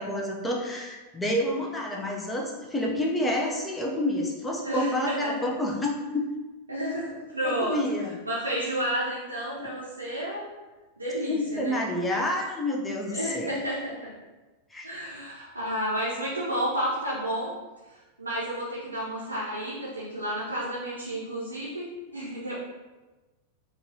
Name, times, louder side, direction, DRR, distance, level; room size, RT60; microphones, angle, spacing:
voice 1, 0.0-6.3 7.4-8.1 11.3-13.5 14.7-14.9, left 1 dB, 10° left, -1 dB, 0.6 m, -29 dB
voice 2, 4.6-5.5 6.7-7.8 8.2-10.5 11.0-11.8 13.1-14.1 14.8-17.5 17.9-22.6, equal, 80° right, -7 dB, 0.6 m, -31 dB
3.9 x 2.3 x 2.7 m, 1.2 s
figure-of-eight pair, 90°, 0 cm